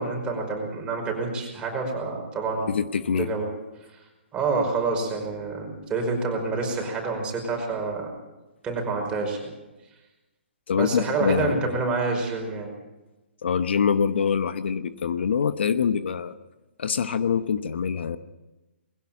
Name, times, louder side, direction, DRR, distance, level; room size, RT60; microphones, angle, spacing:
voice 1, 0.0-2.7 3.2-3.5 4.3-8.1 8.6-9.5 10.8-12.7, right 3 dB, 15° right, 1 dB, 5.3 m, -27 dB
voice 2, 2.7-3.3 10.7-11.7 13.4-16.3 16.8-18.2, left 6 dB, 65° left, 12 dB, 1.0 m, -24 dB
21.0 x 16.5 x 7.4 m, 1.1 s
hypercardioid pair, 140°, 6 cm